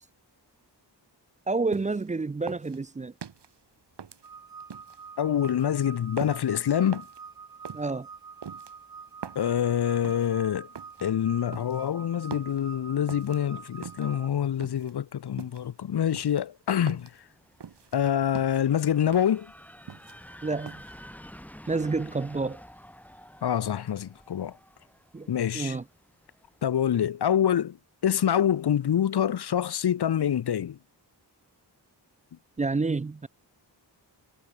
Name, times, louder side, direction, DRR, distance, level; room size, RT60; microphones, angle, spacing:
voice 1, 1.5-3.1 7.7-8.1 20.4-20.8 21.7-22.6 25.1-25.3 25.5-25.8 32.6-33.3, right 3 dB, 20° right, 0.3 m, -29 dB
sound 1, 1.7-2.1 2.5-3.5 4.0-5.0 5.4-5.7 6.2-6.5 6.9-7.2 7.6-7.9 8.4-9.5 10.0-10.3 10.7-11.1 11.5-11.9 12.3-12.6 13.1-13.4 13.8-14.2 14.6-14.9 15.4-15.7 16.1-17.2 17.6-18.0 18.3-18.7 19.1-19.4 19.7-20.3 20.7-20.9, right 7 dB, 70° right, 1.8 m, -42 dB
sound 2, 4.2-14.3, right 5 dB, 50° right, 1.9 m, -46 dB
voice 2, 5.2-7.1 9.4-10.7 11.0-17.1 17.9-19.5 23.4-24.5 25.3-25.8 26.6-27.8 28.0-30.8, left 9 dB, 65° left, 0.7 m, -26 dB
sound 3, 17.0-26.7, equal, 5° left, 5.1 m, -50 dB
wide cardioid pair, 100°, 43 cm